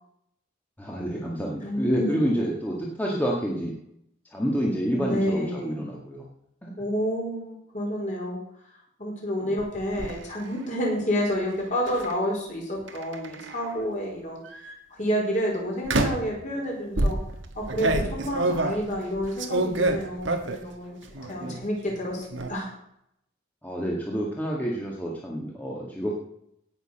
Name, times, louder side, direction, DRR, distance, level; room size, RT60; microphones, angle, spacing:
voice 1, 0.8-3.7 4.3-6.3 6.6-6.7 9.4-9.5 21.2-21.6 23.6-26.1, equal, 10° left, -3 dB, 2.0 m, -28 dB
voice 2, 1.6-2.2 4.9-5.8 6.8-8.4 9.0-14.7 15.0-17.2 17.6-21.0 21.3-22.7, equal, 40° left, -2 dB, 5.1 m, -29 dB
sound 1, 9.6-10.1 11.9-12.1 12.9-13.7 14.4-14.7 15.9-16.4 17.0-20.7 21.1-21.6 21.9-22.5, right 2 dB, 70° right, 1.6 m, -27 dB
17.5 x 6.8 x 6.6 m, 0.73 s
head